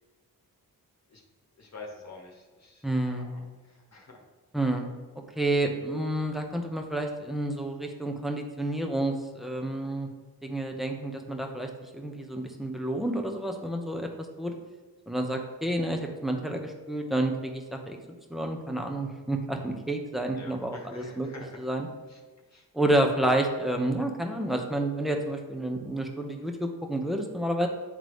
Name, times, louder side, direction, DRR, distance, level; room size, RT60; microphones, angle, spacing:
voice 1, 1.6-3.4 3.9-4.2 20.4-21.6 22.1-22.2 22.5-22.6, left 3 dB, 40° left, 0 dB, 1.4 m, -47 dB
voice 2, 2.8-3.3 4.5-4.9 5.4-10.1 10.4-14.1 14.4-14.5 15.1-21.3 21.6-21.9 22.7-27.7, right 1 dB, ahead, 3 dB, 1.0 m, -29 dB
9.2 x 3.7 x 3.2 m, 1.3 s
cardioid pair, 60°, 39 cm